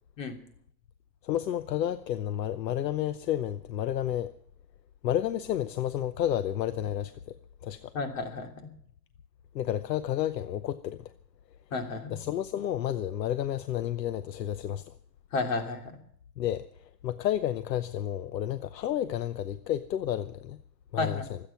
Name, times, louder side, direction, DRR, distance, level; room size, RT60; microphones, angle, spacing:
voice 1, 1.2-4.3 5.0-7.3 7.6-7.9 9.5-11.1 12.1-14.9 16.4-20.6 20.9-21.4, left 11 dB, 75° left, 0.9 m, -31 dB
voice 2, 7.9-8.5 11.7-12.2 15.3-15.9 21.0-21.3, left 3 dB, 50° left, 3.0 m, -31 dB
24.5 x 8.9 x 5.9 m
hypercardioid pair, 175°, 50 cm